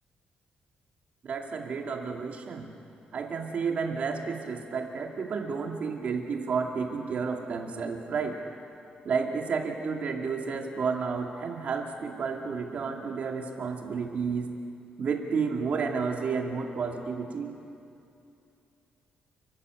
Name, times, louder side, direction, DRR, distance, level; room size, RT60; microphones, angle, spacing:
voice 1, 1.2-2.7 3.1-8.4 9.0-14.5 15.0-17.5, right 5 dB, 45° right, 2 dB, 2.2 m, -31 dB
29.5 x 12.5 x 8.2 m, 2.7 s
wide cardioid pair, 170°, 3 cm